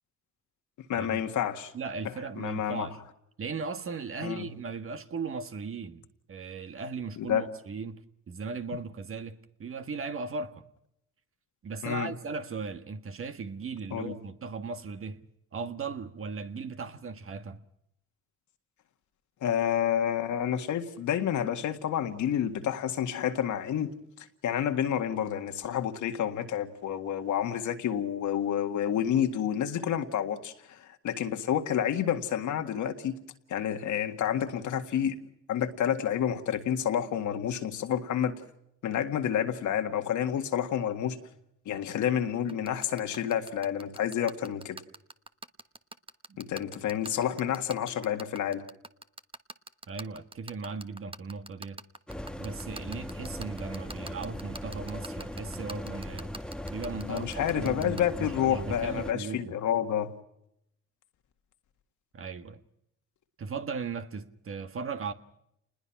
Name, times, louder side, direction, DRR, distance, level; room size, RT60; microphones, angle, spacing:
voice 1, 0.9-1.7 2.4-2.9 4.2-4.5 7.2-7.5 11.8-12.1 13.9-14.1 19.4-23.9 24.2-33.2 33.5-35.2 35.5-38.3 38.8-41.2 41.7-44.8 46.4-48.6 57.0-60.1, left 9 dB, 75° left, 1.9 m, -29 dB
voice 2, 1.7-3.0 3.4-6.0 6.3-10.6 11.6-15.2 15.5-17.6 46.3-46.4 49.9-51.8 52.4-56.3 56.7-59.5 62.1-62.6 63.4-65.1, right 4 dB, 45° right, 1.6 m, -37 dB
sound 1, 42.5-58.0, right 3 dB, 20° right, 1.2 m, -42 dB
sound 2, 52.1-59.1, equal, 5° left, 1.1 m, -39 dB
28.5 x 20.5 x 5.9 m
cardioid pair, 90°, 30 cm